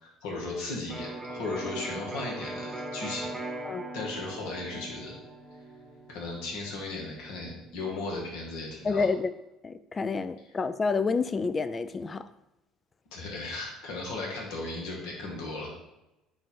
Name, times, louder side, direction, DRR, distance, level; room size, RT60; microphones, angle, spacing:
voice 1, 0.0-3.3 3.9-5.1 6.1-9.1 13.1-15.7, left 2 dB, 75° left, -2 dB, 1.3 m, -36 dB
Electric guitar, 0.9-8.7, right 2 dB, 10° right, 0.9 m, -41 dB
voice 2, 8.8-9.3 9.6-12.2, left 4 dB, 30° left, 13 dB, 0.3 m, -28 dB
3.8 x 2.5 x 4.3 m, 0.92 s
hypercardioid pair, 75°, 0 cm